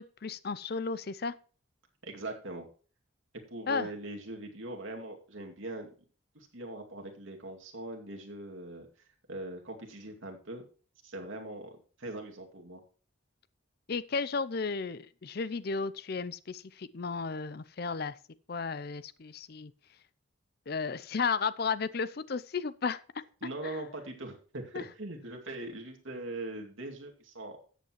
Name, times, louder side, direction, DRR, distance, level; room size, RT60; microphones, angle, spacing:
voice 1, 0.0-1.3 3.7-3.9 13.9-18.2 18.5-19.7 20.7-23.0 23.6-23.8 24.7-24.8, left 5 dB, 50° left, 16 dB, 0.5 m, -34 dB
voice 2, 2.0-2.7 3.5-5.9 6.3-8.9 9.3-10.6 11.0-12.8 23.4-27.6, right 2 dB, 75° right, 2 dB, 2.4 m, -41 dB
13.5 x 8.3 x 3.1 m, 0.39 s
head